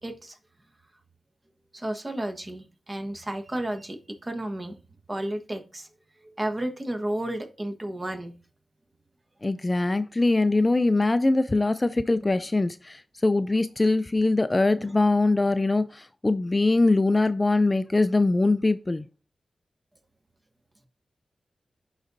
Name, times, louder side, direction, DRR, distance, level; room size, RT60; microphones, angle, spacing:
voice 1, 0.0-0.4 1.7-4.8 5.1-5.9 6.2-8.4, right 1 dB, 30° right, 1.2 m, -32 dB
voice 2, 9.4-19.1, left 2 dB, 30° left, 0.4 m, -22 dB
11.0 x 4.0 x 2.6 m
cardioid pair, 60°, 0 cm